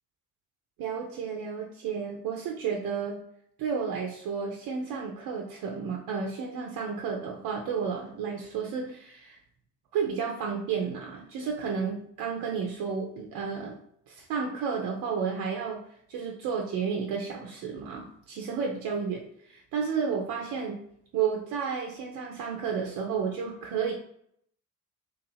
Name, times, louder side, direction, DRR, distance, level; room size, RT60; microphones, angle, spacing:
voice 1, 0.8-3.2 3.6-9.4 9.9-13.8 14.1-15.8 16.1-20.8 21.1-23.9, right 6 dB, 50° right, 0 dB, 0.5 m, -32 dB
2.8 x 2.3 x 2.6 m, 0.68 s
figure-of-eight pair, 45°, 44 cm